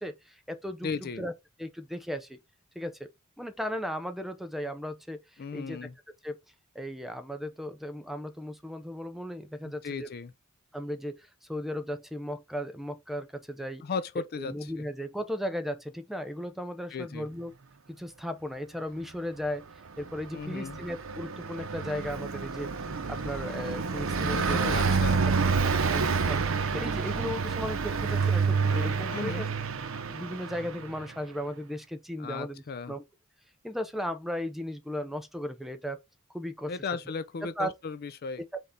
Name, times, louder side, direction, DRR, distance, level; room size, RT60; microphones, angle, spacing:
voice 1, 0.0-1.3 1.6-2.4 2.8-3.1 3.4-5.9 6.2-6.4 6.7-10.1 10.7-13.8 14.4-17.5 17.9-19.7 20.0-22.7 23.1-24.9 25.6-26.4 26.7-29.5 29.9-33.0 33.6-36.0 36.3-36.7 37.6-37.7 38.5-38.6, equal, ahead, 0.6 m, -36 dB
voice 2, 0.8-1.2 5.4-5.9 9.6-10.3 13.8-14.9 16.9-17.3 20.3-20.8 24.2-25.2 29.1-29.4 32.2-33.0 36.7-38.6, left 5 dB, 50° left, 0.4 m, -36 dB
Car passing by, 20.0-31.0, right 5 dB, 65° right, 0.7 m, -28 dB
4.1 x 3.5 x 3.6 m
head